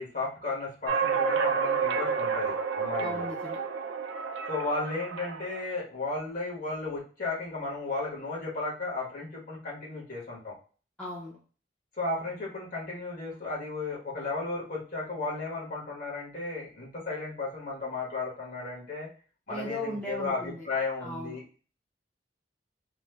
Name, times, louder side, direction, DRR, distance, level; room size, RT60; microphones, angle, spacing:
voice 1, 0.0-3.3 4.5-10.5 12.0-19.1 19.5-21.4, left 3 dB, 45° left, -4 dB, 1.4 m, -34 dB
sound 1, 0.9-5.6, right 5 dB, 85° right, 0.4 m, -30 dB
voice 2, 3.0-3.6 11.0-11.4 19.5-20.7 21.0-21.4, left 1 dB, 5° left, -6 dB, 0.7 m, -37 dB
3.1 x 2.2 x 3.2 m, 0.38 s
head